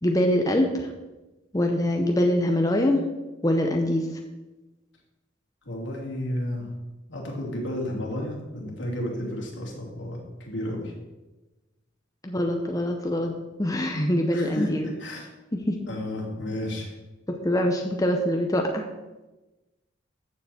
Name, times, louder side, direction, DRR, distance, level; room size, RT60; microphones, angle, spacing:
voice 1, 0.0-0.9 1.5-3.0 3.4-4.1 12.2-13.3 13.6-14.9 15.5-15.8 17.3-18.8, left 1 dB, 20° left, 2 dB, 0.8 m, -24 dB
voice 2, 5.6-6.7 7.1-10.9 14.3-15.3 15.9-16.9, left 1 dB, 75° left, -2 dB, 2.9 m, -32 dB
14.0 x 6.9 x 4.3 m, 1.1 s
head